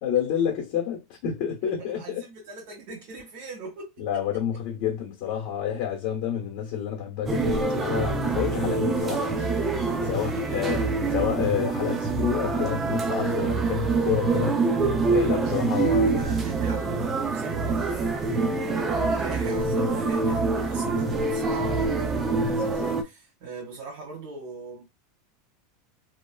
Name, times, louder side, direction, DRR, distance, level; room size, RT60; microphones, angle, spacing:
voice 1, 0.0-2.2 4.0-9.5 10.0-10.8 11.1-14.6 15.1-16.3, left 9 dB, 55° left, 1.0 m, -29 dB
voice 2, 1.9-4.2 10.1-10.6 15.3-15.6 15.9-18.2 18.7-24.8, right 4 dB, 65° right, 1.4 m, -40 dB
sound 1, 7.3-23.0, right 3 dB, 20° right, 0.5 m, -25 dB
3.1 x 2.3 x 2.3 m
supercardioid pair, 145°, 0 cm